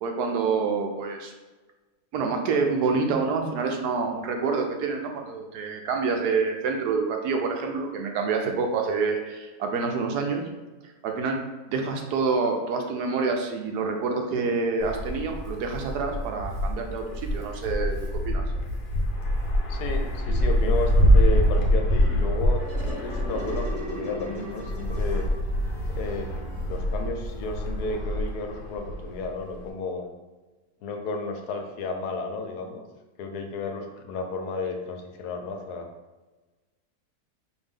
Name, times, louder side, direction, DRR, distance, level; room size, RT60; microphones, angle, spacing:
voice 1, 0.0-1.3 2.1-10.5 11.0-11.4 11.7-18.4, right 4 dB, 90° right, 3 dB, 1.2 m, -27 dB
Wind, 14.8-29.7, equal, 65° left, 1.1 m, -25 dB
voice 2, 19.7-25.3 25.9-30.0 30.8-32.8 33.2-35.9, left 3 dB, 80° left, 4 dB, 1.2 m, -33 dB
sound 1, 22.0-27.3, right 1 dB, 65° right, 1.7 m, -39 dB
5.0 x 2.6 x 3.5 m, 1.2 s
omnidirectional pair, 1.7 m